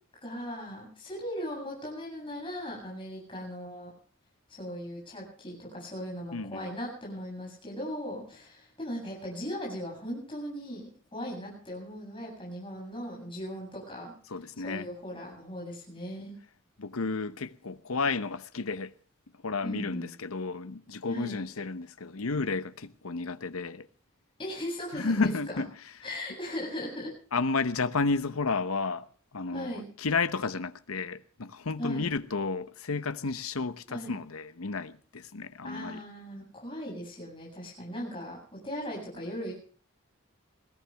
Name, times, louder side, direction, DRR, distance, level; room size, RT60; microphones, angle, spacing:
voice 1, 0.2-3.9 4.5-14.1 14.6-16.3 19.6-20.1 21.1-21.4 24.4-25.6 26.0-27.1 29.5-29.8 31.8-32.1 33.9-34.1 35.6-38.4 38.6-39.5, equal, 25° left, 7.9 m, -38 dB
voice 2, 6.3-6.7 14.3-14.9 16.8-18.9 19.4-23.9 24.9-25.7 27.3-29.1 29.3-36.0, left 4 dB, 85° left, 0.9 m, -32 dB
21.0 x 16.0 x 3.5 m
head